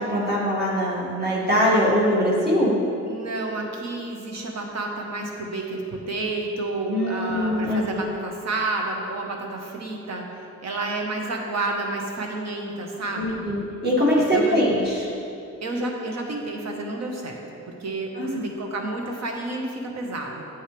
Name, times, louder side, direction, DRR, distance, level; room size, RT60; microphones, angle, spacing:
voice 1, 0.1-2.7 6.9-8.0 13.1-15.1 18.2-18.4, equal, 35° right, -6 dB, 2.1 m, -22 dB
voice 2, 3.0-13.4 14.1-14.7 15.6-17.4 17.7-20.4, right 2 dB, 60° right, 1 dB, 1.5 m, -30 dB
10.0 x 7.7 x 3.4 m, 2.7 s
cardioid pair, 90°, 30 cm